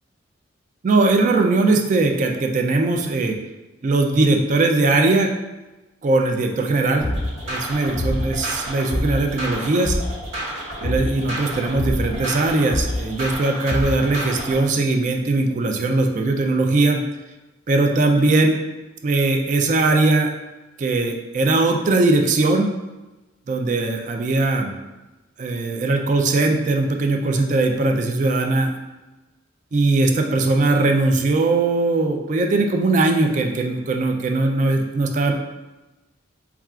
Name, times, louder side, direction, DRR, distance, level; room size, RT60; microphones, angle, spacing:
voice 1, 0.8-3.4 3.8-5.3 6.0-7.1 7.5-10.0 10.8-17.0 17.7-18.6 19.0-20.3 20.8-22.7 23.5-24.8 25.4-28.7 29.7-35.3, right 2 dB, 40° right, 3 dB, 0.3 m, -20 dB
sound 1, 7.0-14.6, left 1 dB, 90° right, 1.3 m, -27 dB
5.5 x 2.3 x 2.4 m, 1.1 s
head